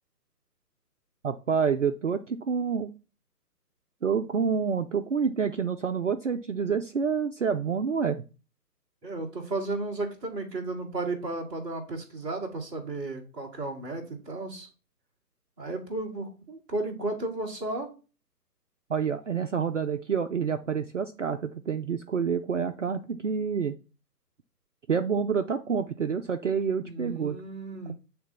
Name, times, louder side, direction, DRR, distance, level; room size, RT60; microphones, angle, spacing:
voice 1, 1.2-2.9 4.0-8.2 18.9-23.7 24.9-27.4, right 6 dB, 50° right, 6 dB, 0.5 m, -28 dB
voice 2, 9.0-14.7 15.6-17.9 26.8-27.9, right 2 dB, 10° right, -6 dB, 0.9 m, -34 dB
8.2 x 3.4 x 4.5 m, 0.33 s
figure-of-eight pair, 140°, 49 cm